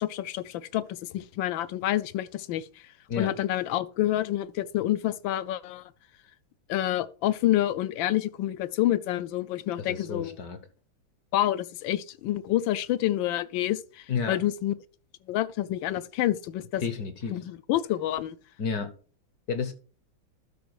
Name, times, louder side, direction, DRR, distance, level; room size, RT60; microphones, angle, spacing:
voice 1, 0.0-2.7 3.2-5.8 6.7-10.4 11.3-14.7 15.3-16.8 17.3-18.4, left 13 dB, 75° left, 1.2 m, -28 dB
voice 2, 9.8-10.6 14.1-14.4 16.8-17.4 18.6-18.9 19.5-19.7, left 5 dB, 55° left, 1.2 m, -31 dB
12.0 x 4.4 x 4.7 m
omnidirectional pair, 2.3 m